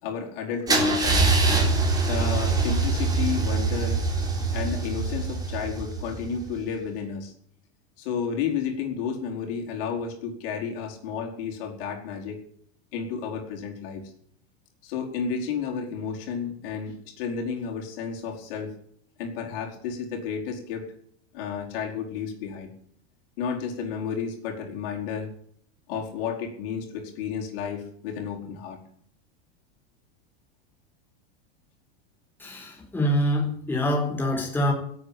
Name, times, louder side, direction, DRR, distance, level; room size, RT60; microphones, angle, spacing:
voice 1, 0.0-1.3 2.0-4.0 4.5-7.3 8.0-12.4 12.9-14.1 14.8-18.7 19.2-20.8 21.3-22.7 23.4-25.3 25.9-28.8, left 6 dB, 60° left, 0 dB, 4.8 m, -32 dB
Car / Engine starting / Idling, 0.7-6.5, right 3 dB, 10° right, 3.7 m, -24 dB
voice 2, 32.4-34.7, equal, 5° left, -2 dB, 4.4 m, -25 dB
17.0 x 8.9 x 8.8 m, 0.64 s
supercardioid pair, 155°, 32 cm